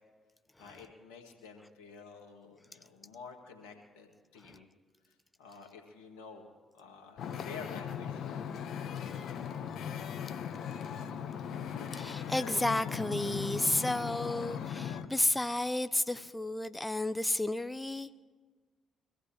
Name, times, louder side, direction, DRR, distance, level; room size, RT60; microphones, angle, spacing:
voice 1, 0.6-4.7 5.0-6.5 6.7-8.7, left 5 dB, 85° left, 3 dB, 1.7 m, -50 dB
Wind / Ocean, 7.2-15.1, left 8 dB, 65° left, 0.8 m, -38 dB
voice 2, 11.9-18.1, left 1 dB, 15° left, 12 dB, 0.6 m, -32 dB
23.5 x 15.0 x 2.9 m, 1.4 s
hypercardioid pair, 40°, 0 cm